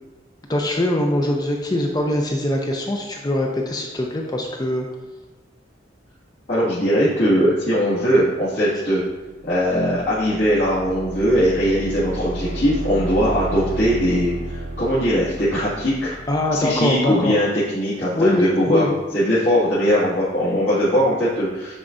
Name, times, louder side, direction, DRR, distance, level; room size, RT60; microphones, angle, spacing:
voice 1, 0.5-4.9 16.3-17.3 18.1-19.0, left 1 dB, 20° left, 1 dB, 0.5 m, -22 dB
voice 2, 6.5-9.0 9.4-16.2 16.5-18.9 19.1-21.7, equal, 75° left, -11 dB, 2.1 m, -20 dB
sound 1, 9.4-17.2, right 1 dB, 80° right, 1.6 m, -32 dB
9.6 x 4.4 x 2.6 m, 1.2 s
head